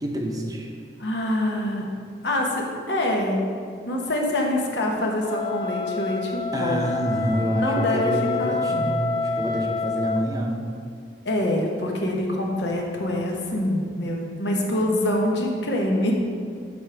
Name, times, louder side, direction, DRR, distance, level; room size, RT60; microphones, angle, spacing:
voice 1, 0.0-0.7 6.5-10.7, right 1 dB, 20° right, 0 dB, 0.7 m, -27 dB
voice 2, 1.0-2.0 2.2-3.5 3.8-6.8 7.6-9.0 11.2-16.1, left 1 dB, 75° left, 0 dB, 1.1 m, -25 dB
Wind instrument woodwind instrument, 5.2-10.3, left 4 dB, 25° left, 0.3 m, -27 dB
9.5 x 3.6 x 4.9 m, 2.2 s
head